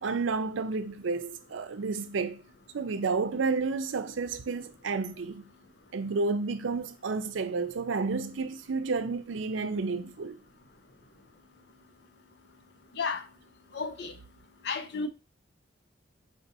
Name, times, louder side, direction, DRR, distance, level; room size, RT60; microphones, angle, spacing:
voice 1, 0.0-2.4 2.7-5.4 5.9-10.4, right 4 dB, 90° right, 0.5 m, -31 dB
voice 2, 13.7-14.1 14.6-15.1, left 4 dB, 60° left, 0.6 m, -32 dB
4.9 x 2.6 x 3.9 m
head